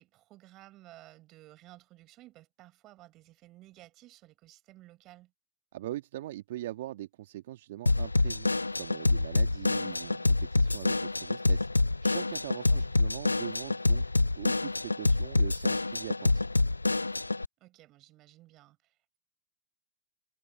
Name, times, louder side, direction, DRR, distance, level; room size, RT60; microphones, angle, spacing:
voice 1, 0.0-5.3 9.7-10.3 12.7-13.0 17.6-19.2, right 17 dB, 35° right, 7.0 m, -55 dB
voice 2, 5.7-8.5 8.8-11.7 12.0-16.5, right 14 dB, 60° right, 1.9 m, -42 dB
Drum kit / Drum, 7.9-17.5, left 2 dB, 90° left, 0.6 m, -27 dB
figure-of-eight pair, 100°, 0 cm